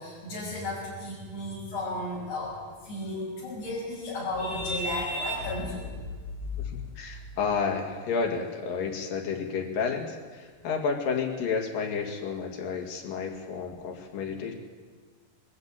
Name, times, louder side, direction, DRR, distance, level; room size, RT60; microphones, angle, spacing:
voice 1, 0.0-2.6 2.8-6.0, left 1 dB, 45° left, -8 dB, 7.1 m, -33 dB
voice 2, 6.6-14.5, left 5 dB, 70° left, 2 dB, 3.8 m, -31 dB
21.0 x 14.0 x 8.9 m, 1.5 s
omnidirectional pair, 4.1 m